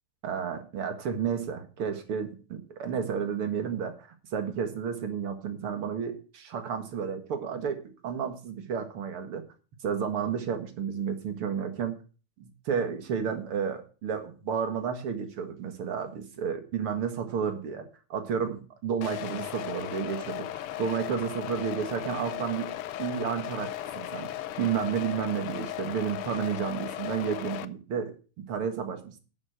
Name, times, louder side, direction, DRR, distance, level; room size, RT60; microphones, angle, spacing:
voice 1, 0.2-4.0 4.3-7.8 8.0-9.4 9.8-12.0 12.7-22.7 23.0-24.3 24.6-28.1 28.4-29.2, right 7 dB, 80° right, 7 dB, 2.6 m, -31 dB
sound 1, 19.0-27.6, left 13 dB, 85° left, 1.7 m, -36 dB
11.5 x 7.5 x 6.0 m, 0.36 s
omnidirectional pair, 2.4 m